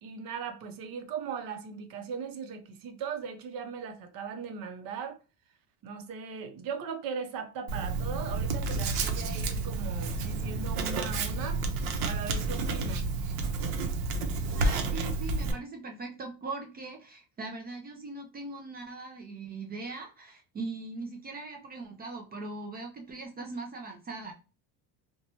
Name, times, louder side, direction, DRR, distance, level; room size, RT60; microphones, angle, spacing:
voice 1, 0.0-5.2 5.8-11.6 12.0-13.0, right 6 dB, 50° right, 0.7 m, -38 dB
Writing, 7.7-15.5, right 3 dB, 80° right, 0.8 m, -30 dB
voice 2, 14.5-24.3, right 3 dB, 25° right, 0.3 m, -40 dB
2.9 x 2.2 x 2.7 m
cardioid pair, 140°, 44 cm